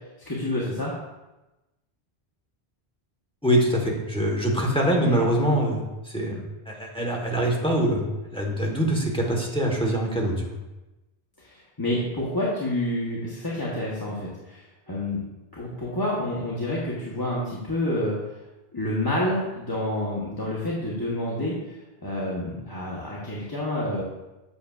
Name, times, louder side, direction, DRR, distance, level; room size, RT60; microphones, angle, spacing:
voice 1, 0.3-1.0 5.1-5.3 11.4-15.2 15.5-18.2 18.7-21.6 22.0-24.0, left 1 dB, 20° left, -6 dB, 0.9 m, -28 dB
voice 2, 3.4-5.9 6.1-10.6, right 1 dB, 5° left, -1 dB, 1.1 m, -24 dB
8.0 x 6.2 x 2.4 m, 1.0 s
omnidirectional pair, 1.1 m